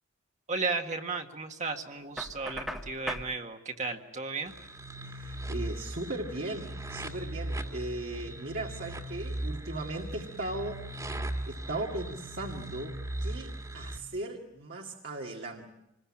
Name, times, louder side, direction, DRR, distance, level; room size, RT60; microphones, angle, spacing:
voice 1, 0.5-4.5, right 4 dB, 35° right, 4 dB, 1.8 m, -34 dB
Knock, 2.2-3.3, equal, ahead, 1.5 m, -38 dB
sound 1, 4.5-14.0, right 1 dB, 20° right, 2.1 m, -38 dB
voice 2, 5.0-10.8 11.5-15.6, right 2 dB, 55° right, 0 dB, 2.0 m, -37 dB
27.0 x 20.5 x 8.7 m, 0.89 s
head